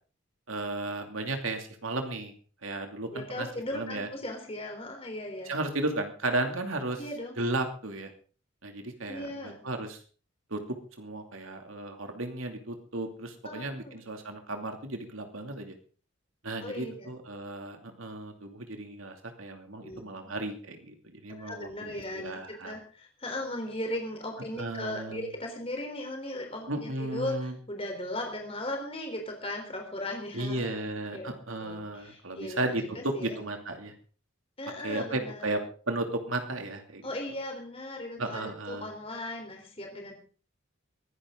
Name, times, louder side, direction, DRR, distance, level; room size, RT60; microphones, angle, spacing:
voice 1, 0.5-2.3 2.6-3.5 3.7-4.1 5.5-7.0 7.4-8.1 8.6-10.0 10.5-10.6 11.0-15.8 16.4-22.8 24.6-25.3 26.7-27.5 30.3-33.9 34.8-35.6 35.9-37.1 38.2-38.9, right 2 dB, 75° right, 5 dB, 2.7 m, -34 dB
voice 2, 3.1-5.5 7.0-7.4 9.1-9.6 13.4-14.0 16.6-16.9 19.8-20.4 21.3-30.9 31.1-31.4 31.6-32.6 33.0-33.4 34.6-35.5 37.0-40.2, left 1 dB, 25° left, 2 dB, 3.8 m, -37 dB
22.5 x 11.0 x 3.8 m, 0.40 s
head